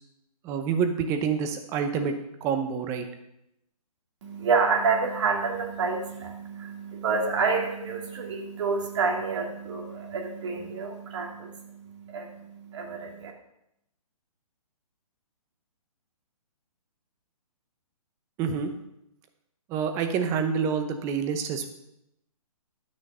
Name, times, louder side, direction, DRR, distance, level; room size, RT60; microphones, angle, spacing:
voice 1, 0.4-2.1 2.4-3.0 18.4-18.7 19.7-21.7, right 6 dB, 15° right, 7 dB, 0.7 m, -27 dB
voice 2, 4.2-13.3, right 4 dB, 50° right, 2 dB, 2.3 m, -28 dB
12.0 x 6.4 x 5.5 m, 0.83 s
hypercardioid pair, 160°, 19 cm